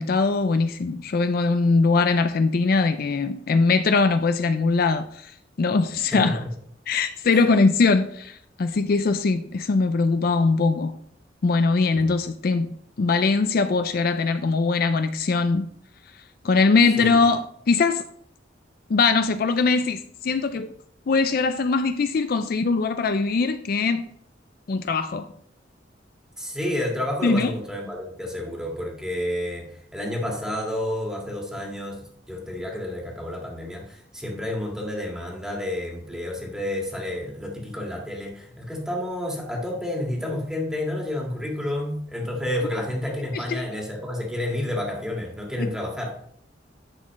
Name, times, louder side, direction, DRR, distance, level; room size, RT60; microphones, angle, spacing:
voice 1, 0.0-5.3 5.6-6.4 6.9-11.0 11.4-15.7 16.4-18.0 18.9-20.7 21.1-24.1 24.7-25.3 27.2-27.5 43.3-43.6 45.6-45.7, left 4 dB, 55° left, 0.4 m, -21 dB
voice 2, 26.4-46.2, left 1 dB, 5° right, 1.9 m, -30 dB
10.5 x 6.4 x 3.1 m
head